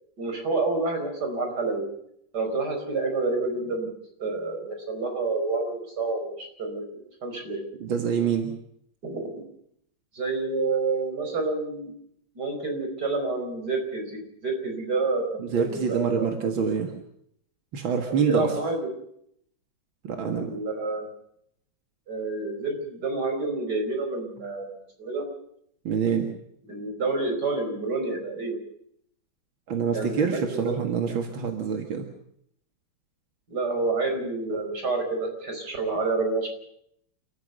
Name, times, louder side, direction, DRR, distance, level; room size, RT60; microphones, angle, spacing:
voice 1, 0.2-1.8 2.3-3.9 4.2-7.6 9.0-9.4 10.1-11.9 12.4-16.4 18.1-18.9 20.1-21.1 22.1-25.3 26.7-28.6 29.9-30.7 33.5-36.5, right 3 dB, 55° right, 4 dB, 5.4 m, -29 dB
voice 2, 7.8-8.5 15.4-16.9 17.7-18.6 20.0-20.5 25.8-26.3 29.7-32.1, right 6 dB, 85° right, 5 dB, 2.6 m, -26 dB
29.0 x 14.5 x 6.7 m, 0.72 s
omnidirectional pair, 2.1 m